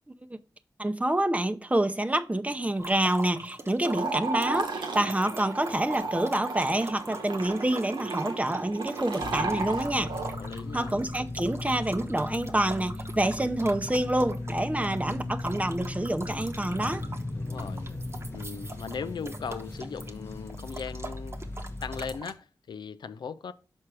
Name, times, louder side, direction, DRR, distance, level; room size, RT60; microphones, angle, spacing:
voice 1, 0.8-10.1 10.7-17.1, right 1 dB, 20° right, 0.7 m, -27 dB
sound 1, 2.8-22.3, right 2 dB, 35° right, 1.0 m, -44 dB
sound 2, 3.8-10.4, right 3 dB, 90° right, 0.9 m, -34 dB
sound 3, 9.2-22.2, left 2 dB, 30° left, 0.8 m, -37 dB
voice 2, 10.4-11.0 17.3-17.9 18.3-21.4 21.8-23.5, left 6 dB, 80° left, 0.4 m, -38 dB
6.1 x 4.4 x 4.8 m
cardioid pair, 45°, 8 cm